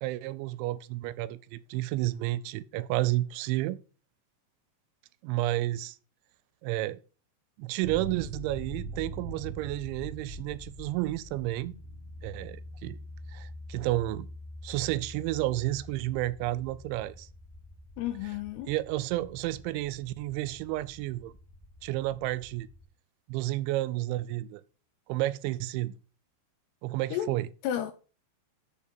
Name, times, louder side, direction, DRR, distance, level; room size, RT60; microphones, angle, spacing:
voice 1, 0.0-3.8 5.2-6.0 6.6-7.0 7.6-11.7 12.2-13.0 13.3-14.3 14.6-17.3 18.7-21.3 21.8-22.7 23.3-24.6 25.1-25.9 26.8-27.5, right 16 dB, 85° right, 2.9 m, -31 dB
sound 1, 7.8-22.8, right 1 dB, 30° left, 1.7 m, -44 dB
voice 2, 18.0-18.7 27.1-27.3 27.6-27.9, left 11 dB, 80° left, 2.5 m, -32 dB
6.9 x 5.3 x 6.7 m
omnidirectional pair, 5.3 m